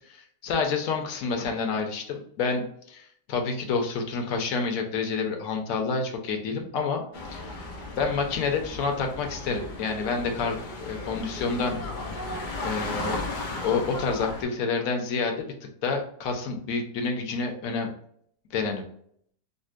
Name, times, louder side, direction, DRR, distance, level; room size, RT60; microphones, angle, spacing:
voice 1, 0.1-7.0 7.3-7.6 8.0-10.6 10.8-11.8 12.6-13.2 13.6-15.5 15.8-17.9 18.5-18.8, left 4 dB, 60° left, 3 dB, 1.0 m, -28 dB
sound 1, 7.1-14.4, left 2 dB, 75° left, 0.4 m, -35 dB
5.2 x 2.0 x 2.4 m, 0.66 s
omnidirectional pair, 1.8 m